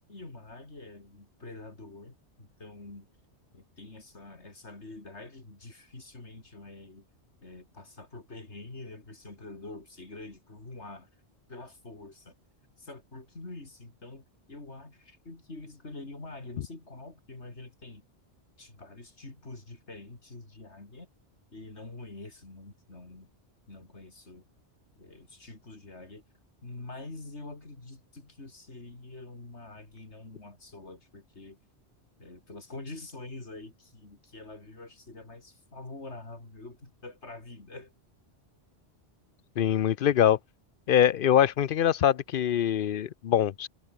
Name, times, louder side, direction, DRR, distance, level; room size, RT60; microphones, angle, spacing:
voice 1, 0.1-3.1 3.5-7.1 7.4-11.1 11.5-12.3 12.8-18.0 18.6-21.1 21.5-23.3 23.7-24.4 24.9-26.2 26.6-31.6 32.2-37.9, left 2 dB, 85° left, 4.4 m, -46 dB
voice 2, 39.6-40.4 40.9-43.7, left 10 dB, 60° left, 0.7 m, -23 dB
omnidirectional pair, 1.1 m